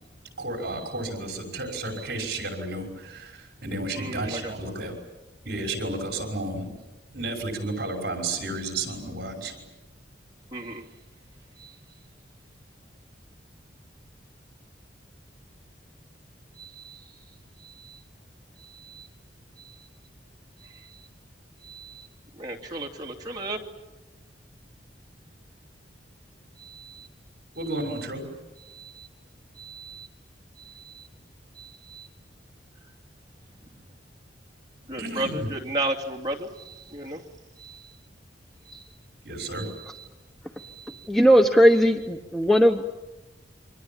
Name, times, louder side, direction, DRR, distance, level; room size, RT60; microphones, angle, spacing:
voice 1, 0.4-5.0 5.4-6.7 7.1-9.6 27.5-28.2 35.0-35.5 39.2-39.7, right 2 dB, 55° right, 5.9 m, -32 dB
voice 2, 3.9-4.5 10.5-10.9 11.6-11.8 16.6-17.1 17.6-18.0 18.6-19.1 19.6-19.9 20.6-21.1 21.6-22.1 22.4-23.6 26.6-27.1 27.7-28.0 28.7-29.1 29.6-30.1 30.6-31.1 31.5-32.1 34.9-37.2 37.6-37.9 38.7-38.8 39.6-40.0 40.6-41.1, right 2 dB, 20° right, 2.7 m, -36 dB
voice 3, 41.1-43.0, equal, ahead, 1.0 m, -18 dB
28.5 x 25.0 x 7.3 m
head